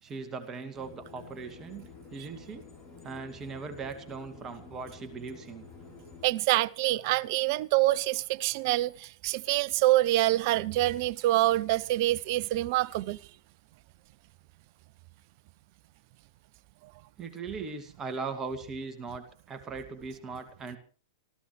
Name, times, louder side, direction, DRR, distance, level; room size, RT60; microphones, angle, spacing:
voice 1, 0.0-1.8 2.1-2.7 3.0-5.6 17.2-20.8, right 4 dB, 20° right, 2.3 m, -39 dB
sound 1, 0.7-6.3, left 4 dB, 20° left, 7.7 m, -50 dB
voice 2, 6.2-13.2, right 16 dB, 50° right, 0.7 m, -26 dB
26.5 x 15.5 x 3.3 m
figure-of-eight pair, 105°, 2 cm